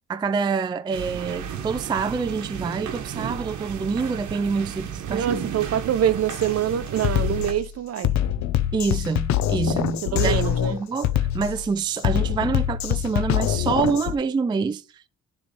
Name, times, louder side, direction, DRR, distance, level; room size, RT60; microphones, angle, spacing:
voice 1, 0.1-5.3 8.7-15.1, right 5 dB, 15° right, 0.3 m, -26 dB
sound 1, 0.9-7.5, right 8 dB, 75° right, 1.1 m, -33 dB
voice 2, 5.1-8.1 10.0-10.8, right 10 dB, 55° right, 0.7 m, -25 dB
Drum kit, 6.3-6.5 7.0-14.2, left 11 dB, 65° left, 0.6 m, -24 dB
10.0 x 3.4 x 4.1 m
cardioid pair, 90°, 30 cm